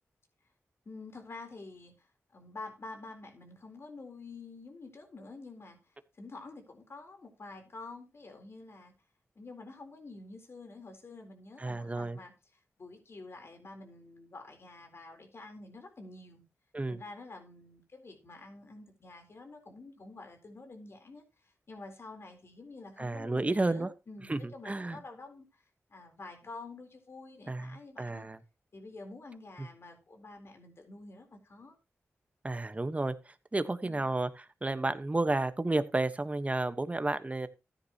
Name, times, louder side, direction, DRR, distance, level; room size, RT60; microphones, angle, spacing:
voice 1, 0.9-8.9 9.4-16.4 16.9-25.6 25.9-28.3 28.7-31.8, left 3 dB, 55° left, 5 dB, 4.0 m, -48 dB
voice 2, 11.6-12.2 16.7-17.0 23.0-23.9 24.3-25.0 27.5-28.4 32.4-33.1 33.5-34.3 34.6-37.5, right 2 dB, 25° right, 11 dB, 1.3 m, -31 dB
14.0 x 9.9 x 3.0 m, 0.27 s
cardioid pair, 55°, 5 cm